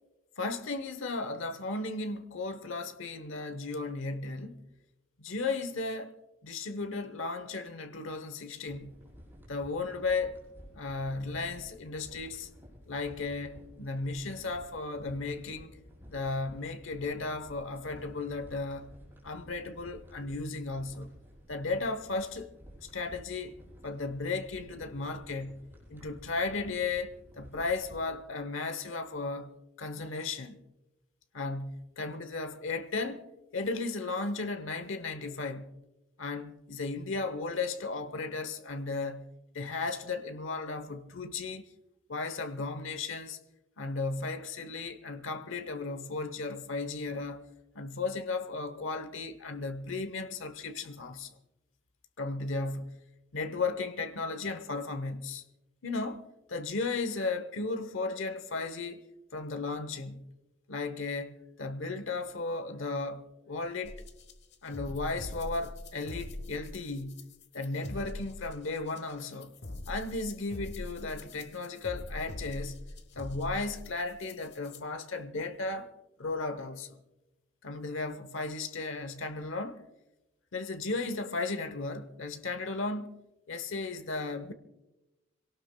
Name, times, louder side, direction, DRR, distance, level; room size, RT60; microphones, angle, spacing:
voice 1, 0.4-4.7 5.2-6.2 6.4-8.9 9.5-10.5 10.7-12.5 12.9-15.8 16.1-18.9 19.2-21.2 21.5-22.5 22.9-23.5 23.8-29.5 29.8-30.6 31.3-33.3 33.5-35.8 36.2-39.3 39.5-41.7 42.1-43.4 43.8-47.5 47.7-51.3 52.2-53.0 53.3-55.4 55.8-56.2 56.5-59.0 59.3-60.3 60.7-64.0 64.6-67.3 67.5-69.5 69.9-72.9 73.1-75.9 76.2-77.0 77.6-79.8 80.5-83.1 83.5-84.5, left 3 dB, 85° left, 1.0 m, -35 dB
sound 1, 8.7-28.2, equal, 10° right, 5.6 m, -53 dB
sound 2, 63.8-74.8, left 1 dB, 60° left, 1.1 m, -43 dB
26.0 x 17.5 x 2.2 m
head